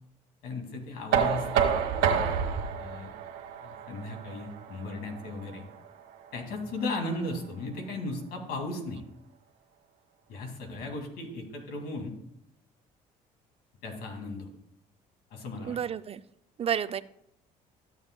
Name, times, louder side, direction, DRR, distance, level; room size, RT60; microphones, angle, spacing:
voice 1, 0.4-1.7 2.8-3.1 3.6-5.6 6.3-9.0 10.3-12.1 13.8-14.5 15.3-15.8, left 2 dB, 75° left, 3 dB, 2.3 m, -36 dB
Knock, 1.1-6.9, right 7 dB, 80° right, 1.2 m, -30 dB
voice 2, 15.6-16.2 16.6-17.0, right 8 dB, 40° right, 14 dB, 0.4 m, -30 dB
13.5 x 7.1 x 2.2 m, 0.77 s
supercardioid pair, 75°, 16 cm